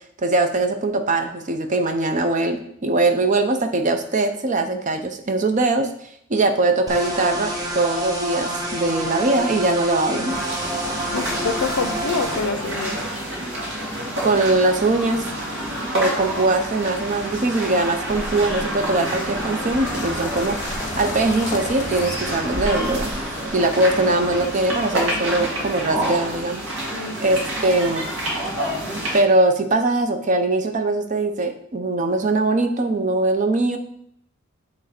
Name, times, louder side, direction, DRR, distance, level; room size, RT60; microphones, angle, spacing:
voice 1, 0.2-5.9 6.3-10.4 14.2-15.2 15.9-23.1 23.5-26.6 27.2-28.1 29.1-33.8, right 2 dB, 35° right, 7 dB, 0.5 m, -21 dB
sound 1, 6.9-12.4, right 1 dB, 20° right, 0.9 m, -28 dB
sound 2, 10.3-29.2, right 1 dB, 70° right, 1.8 m, -28 dB
voice 2, 11.1-13.0 26.9-27.6, left 4 dB, 85° left, 10 dB, 0.5 m, -27 dB
sound 3, 18.1-23.5, left 2 dB, 35° left, 0.7 m, -34 dB
7.1 x 3.2 x 4.3 m, 0.70 s
head